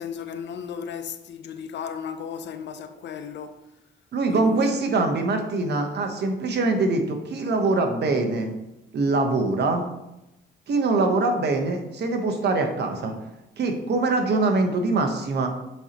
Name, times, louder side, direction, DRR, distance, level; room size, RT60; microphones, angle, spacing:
voice 1, 0.0-3.6 4.3-4.9 11.6-11.7, left 7 dB, 65° left, 0.6 m, -35 dB
voice 2, 4.1-8.5 8.9-9.8 10.7-13.1 13.6-15.5, right 3 dB, 55° right, 1.1 m, -23 dB
7.9 x 4.4 x 2.9 m
cardioid pair, 90°, 20 cm